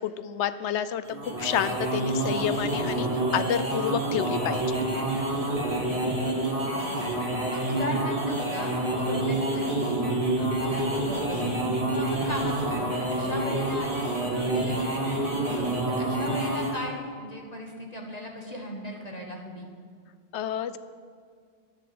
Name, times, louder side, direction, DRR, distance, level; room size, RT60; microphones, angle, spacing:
voice 1, 0.0-4.8 20.3-20.8, left 9 dB, 90° left, 14 dB, 0.9 m, -29 dB
sound 1, 1.0-16.9, right 1 dB, 30° right, 2.0 m, -28 dB
voice 2, 5.3-5.7 6.7-7.0 7.4-10.0 10.3-11.5 11.9-19.7, left 1 dB, 35° left, 1 dB, 1.5 m, -37 dB
10.5 x 10.0 x 7.8 m, 2.1 s
omnidirectional pair, 1.1 m